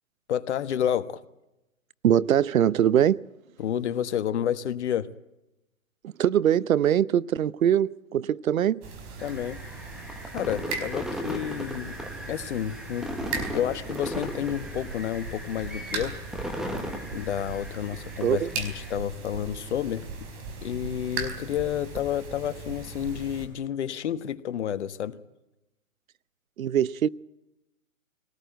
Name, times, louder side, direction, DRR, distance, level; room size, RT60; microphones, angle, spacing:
voice 1, 0.3-1.2 3.6-5.1 9.2-9.6 10.3-12.0 12.3-16.2 17.1-20.3 20.6-25.2, left 10 dB, 55° left, 1.4 m, -30 dB
voice 2, 2.0-3.2 6.0-8.8 18.2-18.5 26.6-27.1, right 10 dB, 75° right, 0.8 m, -22 dB
sound 1, 8.8-23.5, right 4 dB, 30° right, 4.5 m, -38 dB
sound 2, 9.2-19.0, equal, ahead, 1.2 m, -37 dB
23.0 x 18.5 x 9.1 m
hypercardioid pair, 145°, 42 cm